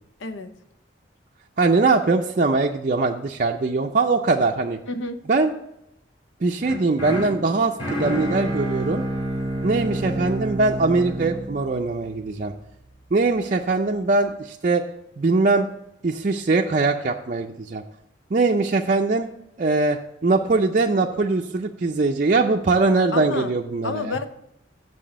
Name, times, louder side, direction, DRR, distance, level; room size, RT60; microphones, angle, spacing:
voice 1, 0.2-0.5 4.9-5.2 23.1-23.5 23.8-24.3, left 3 dB, 80° left, 9 dB, 0.8 m, -29 dB
voice 2, 1.6-4.8 5.3-5.5 6.4-9.0 9.6-12.5 13.1-14.8 15.2-15.7 16.0-17.8 18.3-19.3 19.6-24.2, right 3 dB, 40° right, 1 dB, 0.4 m, -21 dB
sound 1, 6.6-12.7, right 1 dB, 25° left, 3.0 m, -29 dB
7.4 x 5.9 x 6.2 m, 0.80 s
head